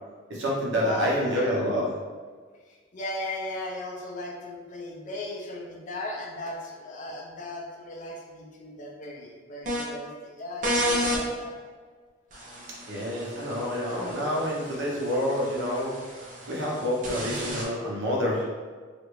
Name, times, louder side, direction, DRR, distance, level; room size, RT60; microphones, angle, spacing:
voice 1, 0.3-1.9 12.9-15.9 16.5-18.5, equal, 70° right, -4 dB, 0.8 m, -27 dB
voice 2, 0.8-1.4 2.7-11.6, left 1 dB, 40° left, -1 dB, 0.5 m, -37 dB
sound 1, 9.7-9.8 10.6-11.2 12.3-17.6, equal, 40° right, 0.6 m, -32 dB
3.2 x 2.5 x 3.0 m, 1.5 s
head